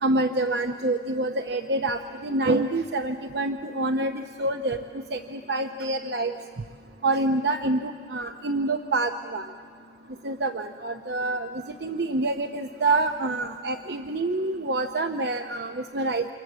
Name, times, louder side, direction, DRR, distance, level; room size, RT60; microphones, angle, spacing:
voice 1, 0.0-6.3 7.0-9.5 10.2-16.3, right 2 dB, 70° right, 7 dB, 0.8 m, -27 dB
29.0 x 26.5 x 7.5 m, 2.2 s
head